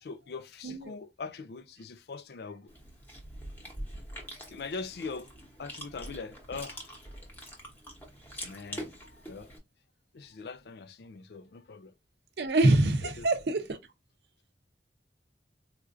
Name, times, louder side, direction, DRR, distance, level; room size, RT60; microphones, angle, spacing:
voice 1, 0.0-2.7 4.5-5.3 5.6-7.0 8.4-9.5 10.1-11.9 13.2-13.3, left 4 dB, 65° left, 0.4 m, -42 dB
voice 2, 0.6-1.0 12.4-13.8, right 2 dB, 70° right, 0.6 m, -25 dB
Chewing mastication, 2.7-9.6, equal, 10° left, 0.9 m, -44 dB
4.2 x 2.5 x 2.4 m
head